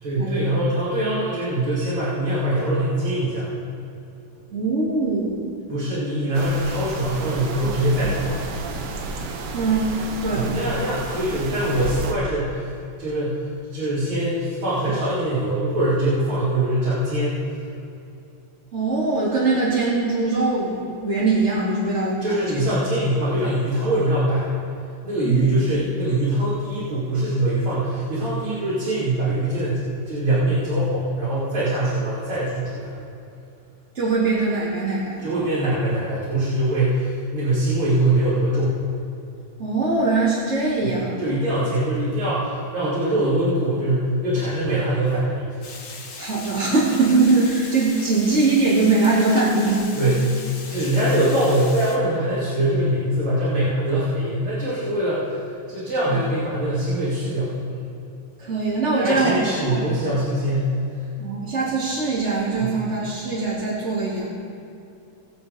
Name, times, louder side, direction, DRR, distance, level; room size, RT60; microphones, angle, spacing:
voice 1, 0.0-3.5 5.7-8.4 10.3-12.7 13.0-13.4 13.7-17.4 22.2-24.5 25.0-33.0 35.2-38.8 40.8-45.6 49.9-57.9 59.0-60.7 62.6-62.7, right 1 dB, 65° right, -10 dB, 3.5 m, -23 dB
voice 2, 4.5-5.5 9.5-10.0 10.2-10.5 18.7-22.6 25.2-25.4 33.9-35.3 39.6-41.2 46.2-49.9 58.4-59.4 59.7-59.8 61.2-64.3, right 3 dB, 30° right, -8 dB, 2.3 m, -22 dB
sound 1, 6.3-12.1, right 3 dB, 85° right, 2.0 m, -31 dB
Water, 45.6-52.0, left 4 dB, 60° left, 2.1 m, -38 dB
20.5 x 7.5 x 4.1 m, 2.7 s
omnidirectional pair, 2.4 m